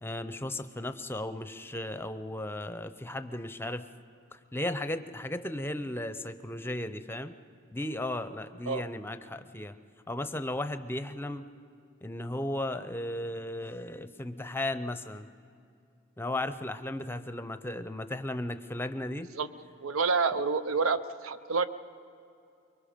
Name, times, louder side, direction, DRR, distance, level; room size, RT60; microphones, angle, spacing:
voice 1, 0.0-3.9 4.3-7.3 7.7-9.7 10.1-11.5 12.0-15.3 16.2-19.3, left 1 dB, 10° left, 10 dB, 0.6 m, -35 dB
voice 2, 19.8-21.7, right 4 dB, 90° right, 13 dB, 0.7 m, -28 dB
24.5 x 22.5 x 5.1 m, 2.6 s
head